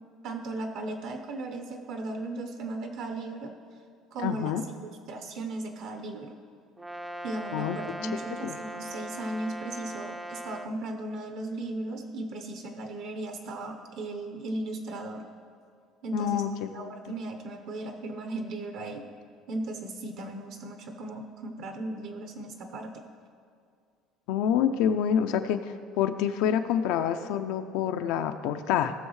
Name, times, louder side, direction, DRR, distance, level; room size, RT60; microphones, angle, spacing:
voice 1, 0.2-3.5 4.1-4.6 4.8-6.3 7.2-15.2 16.0-16.4 16.7-19.0 19.5-22.9, right 2 dB, 55° right, 5 dB, 0.9 m, -36 dB
voice 2, 4.2-4.6 7.5-7.8 8.4-8.5 16.1-16.8 24.3-28.9, left 9 dB, 80° left, 7 dB, 0.5 m, -27 dB
Brass instrument, 6.8-10.8, right 1 dB, 5° right, 0.4 m, -39 dB
18.0 x 6.3 x 3.2 m, 2.2 s
cardioid pair, 165°, 0 cm